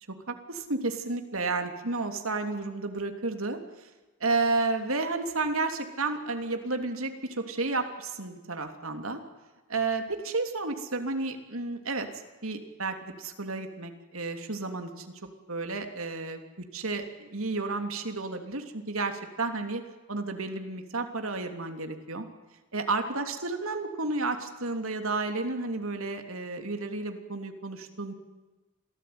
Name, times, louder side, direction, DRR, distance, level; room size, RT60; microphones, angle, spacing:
voice 1, 0.3-3.9 4.2-9.2 9.7-12.1 12.4-15.1 15.5-16.4 16.7-19.8 20.1-22.2 22.7-28.1, right 3 dB, 70° right, 6 dB, 3.2 m, -32 dB
27.0 x 18.0 x 9.6 m, 1.2 s
head